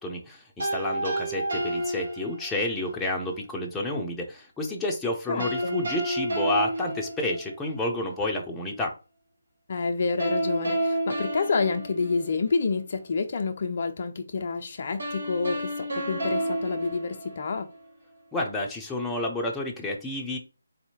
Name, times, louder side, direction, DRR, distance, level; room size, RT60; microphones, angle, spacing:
voice 1, 0.0-8.9 18.3-20.4, left 1 dB, 5° left, 0.6 m, -30 dB
sound 1, 0.6-2.8 5.4-7.8 10.2-12.7 15.0-17.8, right 1 dB, 70° right, 1.4 m, -30 dB
voice 2, 5.3-5.8 9.7-17.7, left 4 dB, 45° left, 0.4 m, -28 dB
4.1 x 2.7 x 2.9 m
figure-of-eight pair, 155°, 0 cm